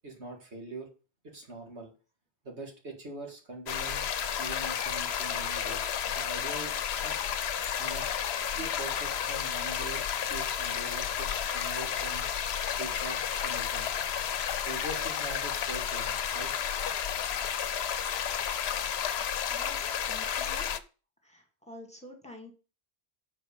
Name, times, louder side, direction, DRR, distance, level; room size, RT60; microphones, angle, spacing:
voice 1, 0.0-0.9 1.2-1.9 2.4-4.1 4.4-7.2 7.8-8.1 8.5-10.0 10.3-12.3 12.7-13.9 14.6-16.5, right 2 dB, 80° right, 1 dB, 2.6 m, -42 dB
sound 1, 3.7-20.8, left 8 dB, 75° left, 0.9 m, -32 dB
voice 2, 19.5-20.7 21.2-22.5, left 1 dB, 5° left, 2 dB, 2.1 m, -49 dB
8.0 x 4.7 x 6.7 m, 0.34 s
omnidirectional pair, 1.1 m